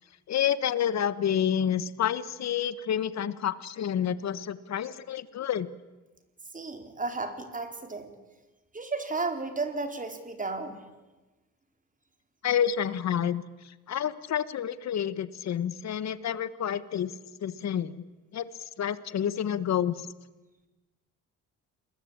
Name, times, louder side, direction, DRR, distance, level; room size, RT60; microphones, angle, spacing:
voice 1, 0.3-5.7 12.4-17.1 17.4-18.0 18.3-18.4 18.8-20.0, left 9 dB, 60° left, 15 dB, 1.5 m, -29 dB
voice 2, 6.5-8.1 8.7-10.9, right 3 dB, 25° right, 7 dB, 4.3 m, -33 dB
28.0 x 21.5 x 8.9 m, 1.2 s
cardioid pair, 90°, 30 cm